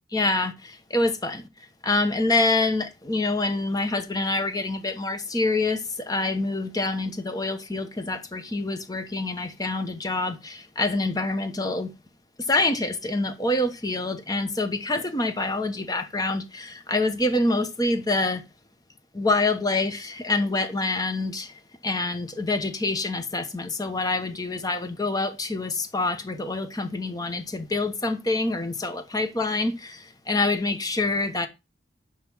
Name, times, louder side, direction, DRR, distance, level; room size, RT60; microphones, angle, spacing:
voice 1, 0.1-11.9 12.4-18.4 19.1-31.5, left 2 dB, 20° left, 0.9 m, -26 dB
5.9 x 5.5 x 6.0 m
head